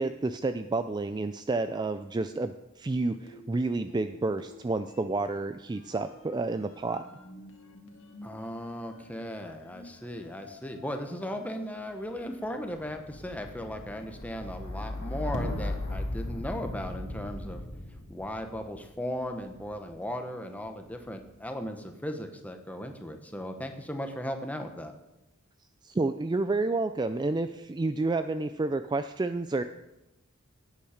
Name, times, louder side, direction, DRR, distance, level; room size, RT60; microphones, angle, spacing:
voice 1, 0.0-7.0 25.8-29.6, right 3 dB, 20° right, 10 dB, 0.3 m, -30 dB
sound 1, 3.2-4.6 4.8-19.9 20.6-21.2, left 1 dB, 60° left, 1.8 m, -40 dB
voice 2, 8.2-17.6 18.1-24.9, equal, 5° left, 5 dB, 1.1 m, -37 dB
16.5 x 8.6 x 5.0 m, 0.98 s
head